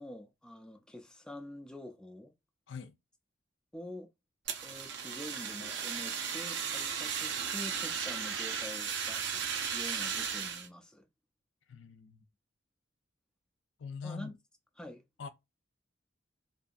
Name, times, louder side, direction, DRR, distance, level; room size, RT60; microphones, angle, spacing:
voice 1, 0.0-2.3 3.7-4.1 4.6-11.0 14.0-14.3 14.8-15.0, left 1 dB, 5° left, 0.4 m, -46 dB
Fire, 4.5-10.7, right 7 dB, 65° right, 0.6 m, -35 dB
voice 2, 11.7-12.2 13.8-14.3 15.2-15.3, left 5 dB, 75° left, 0.4 m, -43 dB
2.6 x 2.6 x 2.3 m
head